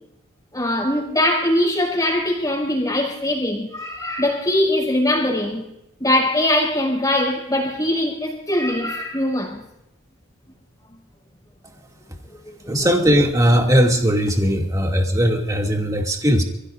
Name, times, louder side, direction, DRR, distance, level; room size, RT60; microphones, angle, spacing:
voice 1, 0.5-5.6 6.0-9.6 12.4-12.7, left 1 dB, 15° left, 6.0 m, -21 dB
voice 2, 12.7-16.4, equal, 15° right, 2.5 m, -18 dB
29.0 x 16.5 x 2.6 m
head